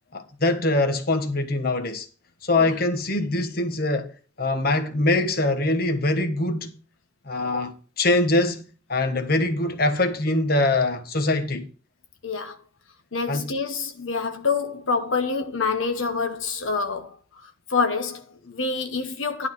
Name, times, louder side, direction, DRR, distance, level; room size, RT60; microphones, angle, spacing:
voice 1, 0.1-2.1 2.4-4.1 4.4-6.7 7.3-8.6 8.9-11.7 13.3-13.5, left 2 dB, 50° left, 1.2 m, -23 dB
voice 2, 12.2-12.6 13.1-17.2 17.7-19.5, left 4 dB, 85° left, 1.0 m, -26 dB
11.5 x 4.0 x 7.7 m
head